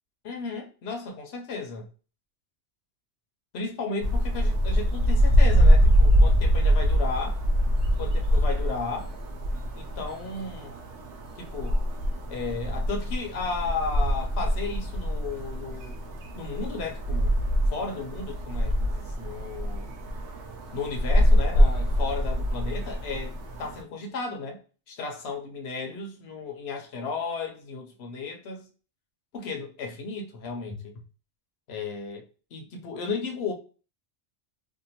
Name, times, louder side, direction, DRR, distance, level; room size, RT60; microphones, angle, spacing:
voice 1, 0.2-1.9 3.5-7.4 8.0-9.1 9.7-10.7 11.4-11.8 12.3-16.0 16.4-17.4 17.7-19.9 20.7-24.6 24.9-28.7 29.3-30.9 31.7-32.2 32.5-33.5, left 4 dB, 70° left, 0.9 m, -34 dB
sound 1, 4.0-23.8, equal, 80° right, 0.9 m, -24 dB
2.7 x 2.2 x 2.8 m
omnidirectional pair, 1.2 m